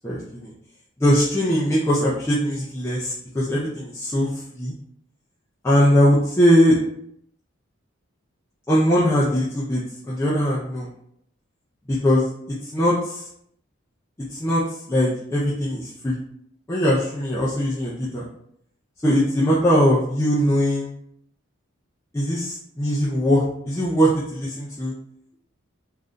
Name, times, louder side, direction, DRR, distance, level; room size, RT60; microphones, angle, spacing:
voice 1, 0.0-0.5 1.0-4.3 4.5-4.7 5.6-6.8 8.7-9.8 10.1-10.9 11.9-12.3 12.7-13.2 14.4-14.6 14.9-16.2 16.7-18.3 19.0-20.9 22.1-24.9, equal, 10° left, -8 dB, 0.4 m, -20 dB
2.5 x 2.2 x 3.6 m, 0.70 s
head